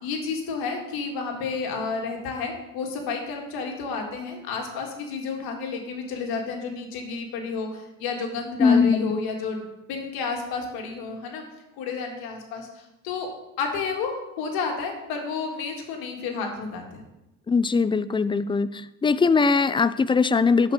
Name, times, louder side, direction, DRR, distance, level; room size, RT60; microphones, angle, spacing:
voice 1, 0.0-11.4 11.8-13.3 13.6-14.1 14.4-17.0, left 4 dB, 75° left, 2 dB, 2.1 m, -31 dB
voice 2, 8.6-9.2 17.5-18.7 19.0-20.7, left 4 dB, 15° left, 15 dB, 0.4 m, -20 dB
12.5 x 5.3 x 4.9 m, 0.97 s
supercardioid pair, 80°, 37 cm